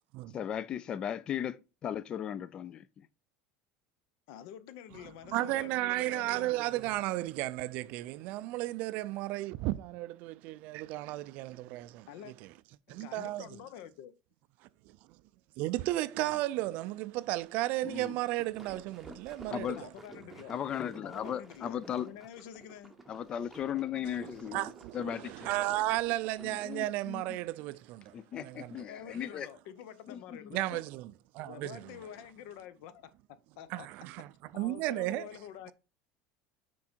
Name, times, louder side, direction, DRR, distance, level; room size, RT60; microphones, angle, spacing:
voice 1, 0.3-2.9 17.8-18.2 19.5-19.8 20.5-22.1 23.1-25.5 26.4-27.4 28.1-29.5 30.1-30.5, left 9 dB, 25° left, 0.3 m, -37 dB
voice 2, 4.3-6.5 12.1-12.3 12.9-14.1 19.8-20.6 21.0-22.9 28.9-30.8 31.4-33.1 33.6-33.9 34.5-35.7, left 10 dB, 65° left, 0.7 m, -48 dB
voice 3, 5.3-12.1 12.4-12.5 12.9-13.5 14.9-15.0 15.6-19.8 24.5-28.9 30.5-32.0 33.7-35.3, right 17 dB, 50° right, 0.4 m, -34 dB
sound 1, 18.1-26.9, right 2 dB, 5° right, 0.8 m, -52 dB
6.1 x 4.5 x 4.4 m
cardioid pair, 165°, 3 cm